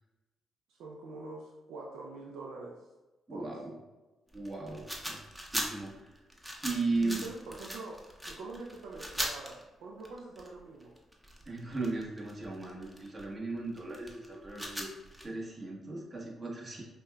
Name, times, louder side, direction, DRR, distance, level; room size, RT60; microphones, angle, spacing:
voice 1, 0.7-2.8 3.3-3.5 6.9-8.0 8.3-10.9, right 3 dB, 80° right, -2 dB, 0.4 m, -44 dB
voice 2, 3.3-3.7 4.3-5.2 5.5-6.2 6.6-7.2 11.5-14.9 15.2-16.8, right 3 dB, 35° right, -1 dB, 1.1 m, -36 dB
sound 1, 4.3-9.6 10.0-13.2 13.8-15.2, equal, 10° right, 0.7 m, -40 dB
5.2 x 2.2 x 2.3 m, 1.1 s
supercardioid pair, 55°, 0 cm